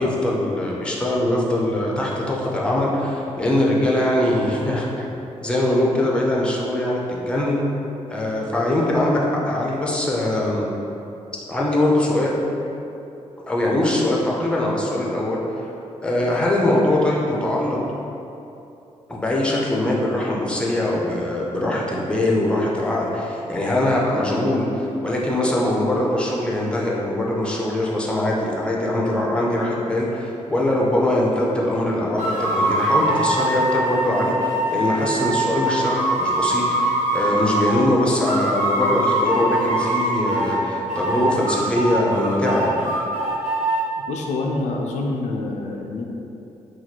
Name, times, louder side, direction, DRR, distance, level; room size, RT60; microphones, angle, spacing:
voice 1, 0.0-5.1 5.4-7.6 8.1-9.2 9.5-10.7 11.5-12.4 13.5-15.4 16.0-17.8 19.1-42.8, left 1 dB, 10° left, -3 dB, 0.5 m, -22 dB
sound 1, 32.2-37.9 38.2-40.6 40.9-43.8, right 1 dB, 70° right, 0.9 m, -23 dB
voice 2, 44.1-46.0, left 2 dB, 75° left, 0 dB, 0.4 m, -26 dB
2.9 x 2.3 x 4.1 m, 2.9 s
cardioid pair, 90°, 12 cm